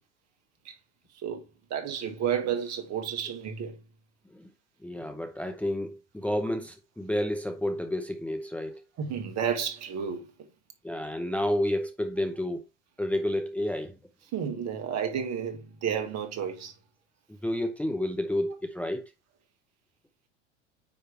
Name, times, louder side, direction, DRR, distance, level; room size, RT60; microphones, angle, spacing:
voice 1, 1.1-1.5 1.7-3.8 9.0-10.5 14.3-16.7, right 8 dB, 45° right, 1.8 m, -31 dB
voice 2, 4.8-8.8 10.8-12.6 13.0-14.0 17.4-19.0, left 1 dB, 5° left, 0.8 m, -30 dB
9.4 x 3.3 x 3.4 m
hypercardioid pair, 85°, 36 cm